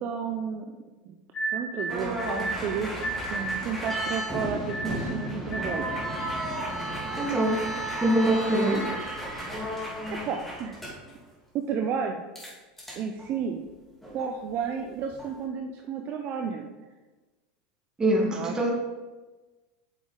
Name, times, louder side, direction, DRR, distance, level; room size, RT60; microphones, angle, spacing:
voice 1, 0.0-0.7 1.1-1.2 1.5-5.9 10.1-10.8 11.5-12.2 13.0-13.6 14.1-16.7 18.3-18.5, right 6 dB, 45° right, 3 dB, 0.7 m, -32 dB
sound 1, 1.3-6.2, right 2 dB, 25° left, 0.9 m, -34 dB
sound 2, 1.9-11.1 12.3-12.5 12.8-13.3 14.0-14.3 15.0-15.3, right 1 dB, 5° left, 2.5 m, -34 dB
voice 2, 7.2-7.7 8.0-8.9 18.0-18.7, right 1 dB, 15° right, -1 dB, 1.8 m, -24 dB
8.2 x 6.3 x 3.9 m, 1.2 s
supercardioid pair, 125°, 4 cm